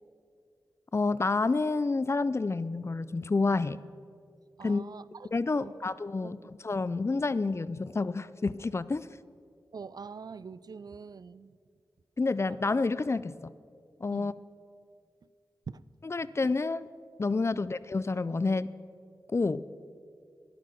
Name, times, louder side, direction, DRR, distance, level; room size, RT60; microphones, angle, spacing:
voice 1, 0.9-3.8 4.6-4.8 5.3-9.1 12.2-13.5 14.0-14.3 16.0-16.9 17.2-18.7 19.3-19.6, left 3 dB, 35° left, 0.4 m, -29 dB
voice 2, 4.6-5.3 5.6-5.8 6.2-6.4 9.7-11.6 14.1-14.4 15.7-15.8 17.5-17.6, right 5 dB, 60° right, 0.4 m, -44 dB
12.0 x 11.0 x 5.9 m
wide cardioid pair, 65°, 8 cm